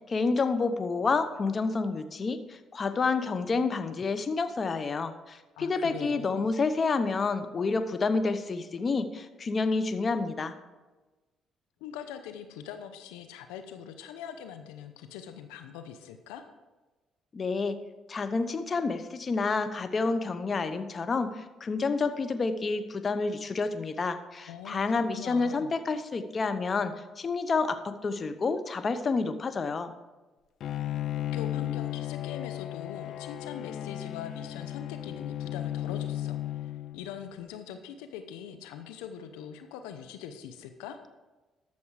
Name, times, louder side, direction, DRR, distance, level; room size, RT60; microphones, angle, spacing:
voice 1, 0.1-10.6 17.3-17.8 18.1-29.9, left 4 dB, 40° left, 10 dB, 0.9 m, -29 dB
voice 2, 5.6-6.5 11.8-16.4 24.5-25.7 31.3-41.0, left 8 dB, 90° left, 8 dB, 0.8 m, -42 dB
Bowed string instrument, 30.6-37.3, left 12 dB, 65° left, 0.4 m, -35 dB
13.0 x 7.0 x 4.9 m, 1.2 s
supercardioid pair, 65°, 0 cm